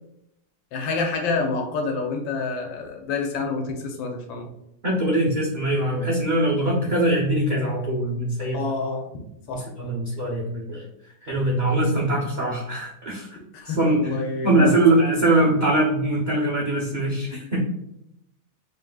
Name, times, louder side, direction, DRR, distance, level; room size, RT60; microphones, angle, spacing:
voice 1, 0.7-4.5 8.5-9.1 9.5-9.6 13.5-14.8, left 4 dB, 90° left, 2 dB, 1.5 m, -28 dB
voice 2, 4.8-8.6 9.5-10.8 11.2-13.4 13.8-14.2 14.4-17.6, right 1 dB, 80° right, -4 dB, 0.4 m, -22 dB
5.3 x 3.1 x 2.3 m, 0.80 s
omnidirectional pair, 2.0 m